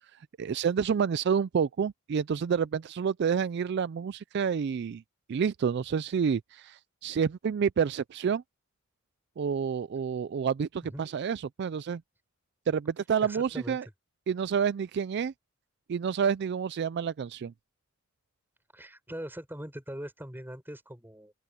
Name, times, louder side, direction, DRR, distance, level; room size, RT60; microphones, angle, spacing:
voice 1, 0.4-5.0 5.3-8.4 9.4-12.0 12.7-13.8 14.3-15.3 15.9-17.5, right 7 dB, 55° right, 0.3 m, -29 dB
voice 2, 13.2-13.8 18.7-21.3, equal, 10° right, 6.1 m, -41 dB
open air
head